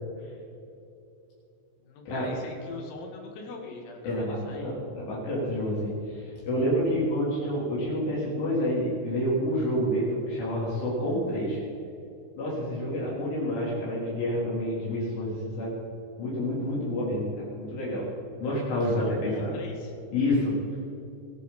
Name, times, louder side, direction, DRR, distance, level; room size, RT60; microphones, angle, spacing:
voice 1, 1.8-4.7 19.0-19.9, left 3 dB, 85° left, 1 dB, 4.7 m, -41 dB
voice 2, 4.0-11.6 12.4-15.8 16.2-18.1 18.4-19.5 20.1-20.6, equal, 65° left, -6 dB, 6.1 m, -28 dB
28.0 x 11.0 x 4.3 m, 2.7 s
omnidirectional pair, 5.9 m